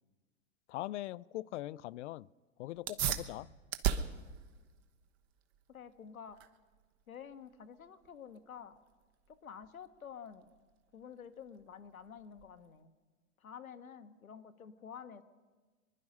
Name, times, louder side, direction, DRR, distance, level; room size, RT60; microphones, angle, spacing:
voice 1, 0.7-2.3 2.6-3.5, left 16 dB, 60° left, 0.5 m, -41 dB
sound 1, 2.7-12.8, right 9 dB, 50° right, 1.2 m, -41 dB
voice 2, 5.7-6.4 7.1-8.8 9.3-10.5 10.9-12.9 13.4-15.2, left 7 dB, 90° left, 1.2 m, -50 dB
24.5 x 11.0 x 5.5 m
hypercardioid pair, 100°, 41 cm